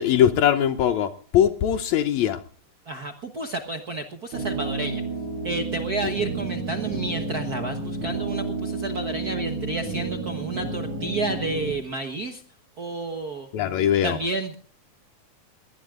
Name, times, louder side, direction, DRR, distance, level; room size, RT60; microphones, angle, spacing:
voice 1, 0.0-2.4 13.5-14.2, left 10 dB, 75° left, 11 dB, 2.0 m, -21 dB
voice 2, 2.9-5.0 5.4-12.4 12.8-13.5 14.0-14.5, right 2 dB, 55° right, 6 dB, 1.0 m, -30 dB
sound 1, 4.3-11.7, right 3 dB, 80° right, 7.2 m, -31 dB
21.0 x 19.0 x 2.5 m, 0.43 s
omnidirectional pair, 3.4 m